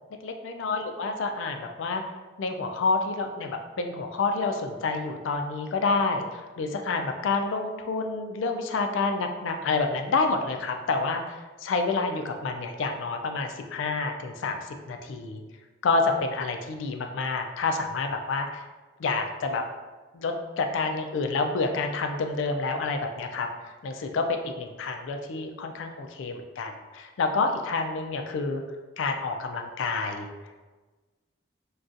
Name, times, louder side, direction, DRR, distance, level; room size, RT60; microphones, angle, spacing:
voice 1, 0.2-2.0 2.4-15.4 15.8-18.6 19.0-19.6 20.1-23.5 23.8-28.6 29.0-30.3, left 3 dB, 80° left, 5 dB, 0.4 m, -28 dB
3.8 x 2.3 x 2.5 m, 1.3 s
head